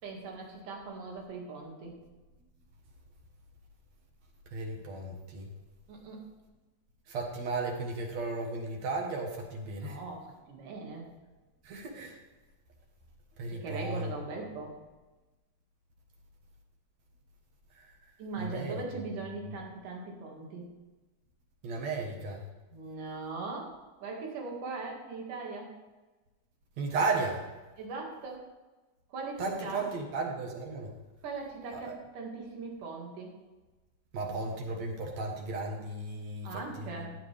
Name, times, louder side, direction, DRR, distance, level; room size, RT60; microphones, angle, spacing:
voice 1, 0.0-2.0 5.9-6.2 9.7-11.1 13.5-14.8 18.2-20.7 22.7-25.7 27.8-28.4 29.1-29.9 31.2-33.3 36.4-37.2, right 3 dB, 90° right, 0 dB, 3.6 m, -40 dB
voice 2, 4.5-5.5 7.1-10.0 11.6-12.2 13.4-14.1 17.7-17.9 18.4-18.8 21.6-22.4 26.8-27.5 29.4-30.9 31.7-32.0 34.1-36.5 36.8-37.0, right 3 dB, 65° right, 1 dB, 2.5 m, -34 dB
15.0 x 9.1 x 3.4 m, 1.2 s
omnidirectional pair, 3.6 m